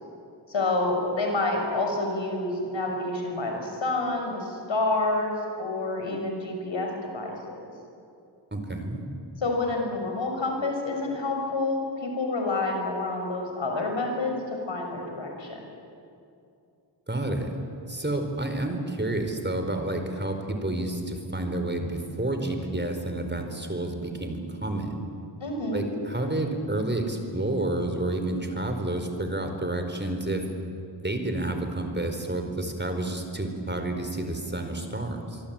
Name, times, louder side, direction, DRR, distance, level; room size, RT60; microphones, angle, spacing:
voice 1, 0.5-7.7 9.4-15.6 25.4-25.8, left 2 dB, 80° left, 2 dB, 6.3 m, -28 dB
voice 2, 8.5-9.0 17.1-17.6 17.9-25.0 25.7-30.4 31.0-35.4, right 1 dB, 25° right, 5 dB, 4.4 m, -30 dB
24.5 x 24.5 x 8.9 m, 2.5 s
cardioid pair, 55°, 45 cm